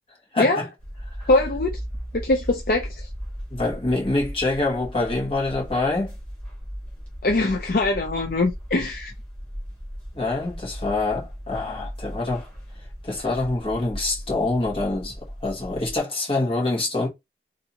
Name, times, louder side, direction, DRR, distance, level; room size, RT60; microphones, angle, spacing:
voice 1, 0.3-0.6 1.2-1.3 3.5-6.1 10.1-12.5 13.0-15.2 15.4-17.1, left 2 dB, 30° left, 1.5 m, -25 dB
sound 1, 0.8-16.0, equal, 5° left, 1.7 m, -37 dB
voice 2, 1.3-1.8 2.1-3.1 7.2-9.1, left 2 dB, 55° left, 0.5 m, -22 dB
3.4 x 2.6 x 2.8 m
head